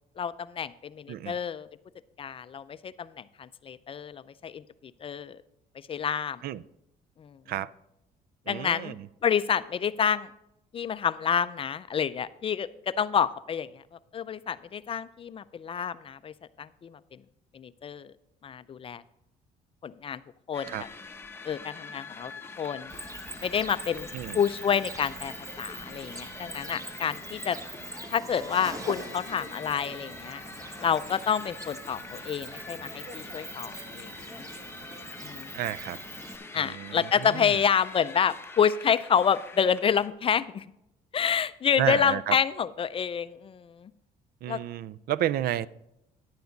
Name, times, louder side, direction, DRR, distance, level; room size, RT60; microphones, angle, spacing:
voice 1, 0.2-1.7 2.2-4.6 5.0-5.4 5.9-6.4 7.2-7.4 8.5-10.3 10.7-13.8 14.1-17.2 17.5-18.1 18.4-19.0 19.8-20.2 20.5-20.8 21.4-22.3 22.6-22.9 23.4-24.1 24.3-27.6 28.1-30.4 30.8-34.1 34.4-34.5 35.2-35.5 36.5-40.7 41.1-43.9 44.5-44.6, left 7 dB, 35° left, 15 dB, 0.4 m, -28 dB
voice 2, 8.5-9.1 20.7-20.8 24.1-24.4 35.5-36.0 36.6-37.6 41.8-42.4 44.4-45.7, right 12 dB, 65° right, 20 dB, 0.4 m, -31 dB
sound 1, 20.5-40.1, left 3 dB, 15° left, 0.8 m, -45 dB
Cricket, 22.9-36.4, right 2 dB, 20° right, 1.0 m, -43 dB
10.5 x 9.3 x 3.9 m, 0.84 s
cardioid pair, 110°, 17 cm